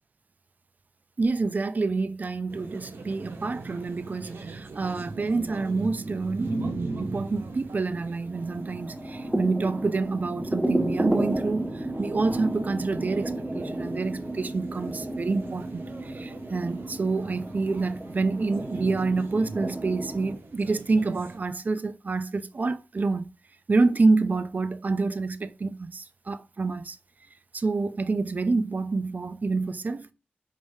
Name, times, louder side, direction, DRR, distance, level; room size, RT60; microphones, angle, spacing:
voice 1, 1.2-6.6 7.0-23.3 23.7-27.0 27.5-30.1, right 3 dB, 45° right, 0.4 m, -27 dB
sound 1, 2.5-21.4, right 3 dB, 85° right, 0.8 m, -40 dB
sound 2, 8.3-20.4, right 1 dB, 10° right, 1.2 m, -32 dB
5.0 x 3.2 x 2.6 m
wide cardioid pair, 75°, 4 cm